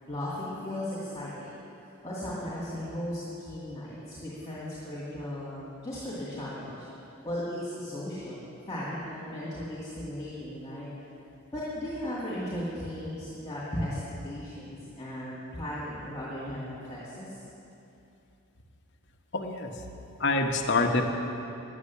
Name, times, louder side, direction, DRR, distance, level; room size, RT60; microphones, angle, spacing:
voice 1, 0.0-1.5 1.8-6.9 7.2-10.9 11.5-17.3, left 1 dB, 15° left, -10 dB, 2.3 m, -36 dB
voice 2, 19.3-19.7 20.2-21.0, left 3 dB, 55° left, 3 dB, 1.0 m, -26 dB
11.0 x 8.4 x 8.4 m, 2.8 s
head